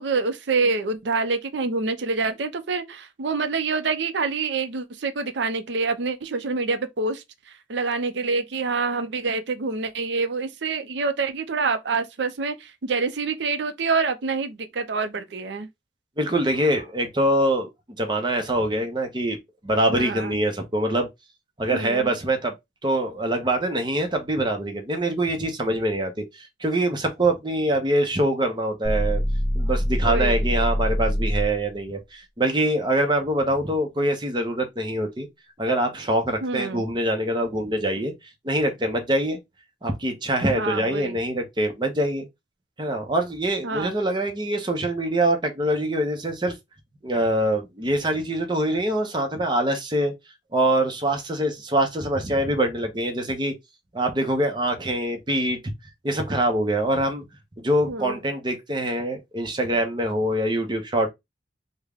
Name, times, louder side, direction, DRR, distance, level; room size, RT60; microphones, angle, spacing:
voice 1, 0.0-7.2 7.7-15.7 19.9-20.4 21.7-22.1 30.1-30.3 36.4-36.8 40.5-41.2 43.6-43.9 57.9-58.2, right 4 dB, 70° right, 0.5 m, -26 dB
voice 2, 16.2-17.7 18.0-19.4 19.6-21.1 21.6-22.5 22.8-29.2 29.5-35.3 35.6-38.1 38.4-39.4 39.8-42.3 42.8-46.6 47.0-50.1 50.5-53.5 53.9-55.6 56.0-57.2 57.6-61.1, right 1 dB, 25° right, 0.6 m, -24 dB
sound 1, 28.8-31.6, equal, 10° left, 0.8 m, -24 dB
3.5 x 2.1 x 3.4 m
head